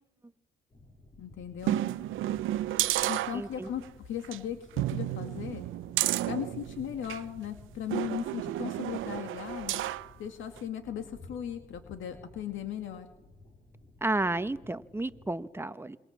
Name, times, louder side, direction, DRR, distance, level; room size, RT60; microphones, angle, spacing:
sound 1, 0.7-15.3, left 2 dB, 30° left, 5.1 m, -55 dB
voice 1, 1.2-1.8 3.0-5.7 6.2-9.8 10.2-13.1, left 9 dB, 75° left, 7 dB, 2.2 m, -37 dB
sound 2, 1.6-3.9 4.2-4.4 4.8-7.3 7.9-10.1 10.6-10.7, right 14 dB, 85° right, 0.8 m, -31 dB
voice 2, 3.3-3.7 14.0-16.0, right 2 dB, 10° right, 12 dB, 1.2 m, -32 dB
27.0 x 24.0 x 7.4 m, 1.1 s
cardioid pair, 90°, 20 cm